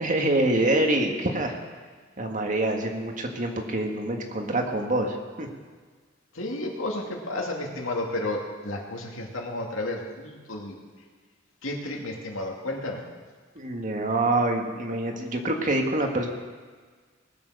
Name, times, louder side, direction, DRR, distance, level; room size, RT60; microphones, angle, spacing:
voice 1, 0.0-1.5 2.2-5.5 13.5-16.3, right 1 dB, 40° right, 3 dB, 1.7 m, -26 dB
voice 2, 6.3-10.8 11.6-13.0, left 2 dB, 85° left, 0 dB, 2.4 m, -32 dB
19.5 x 7.8 x 6.4 m, 1.5 s
head